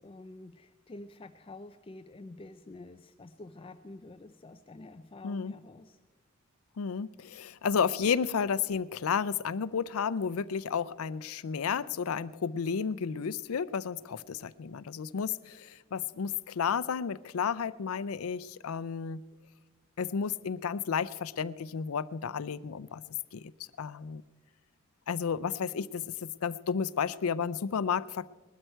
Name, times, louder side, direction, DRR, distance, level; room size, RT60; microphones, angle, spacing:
voice 1, 0.0-6.0, left 2 dB, 25° left, 9 dB, 0.4 m, -48 dB
voice 2, 5.2-5.5 6.8-19.2 20.0-23.0 23.3-23.4 23.8-24.2 25.1-28.3, left 6 dB, 80° left, 16 dB, 0.5 m, -32 dB
20.0 x 12.5 x 4.5 m, 1.3 s
head